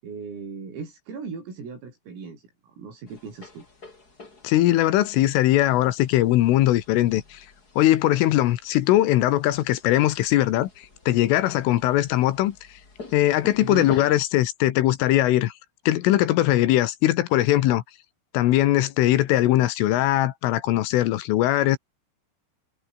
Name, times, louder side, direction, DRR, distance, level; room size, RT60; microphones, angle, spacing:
voice 1, 0.0-3.6 13.6-13.9, right 5 dB, 80° right, 11.0 m, -37 dB
sound 1, 3.1-14.2, left 3 dB, 20° left, 3.9 m, -47 dB
voice 2, 4.4-7.5 7.8-10.7 11.1-12.6 13.1-15.5 15.9-17.8 18.3-21.8, left 15 dB, 80° left, 3.8 m, -20 dB
omnidirectional pair, 5.9 m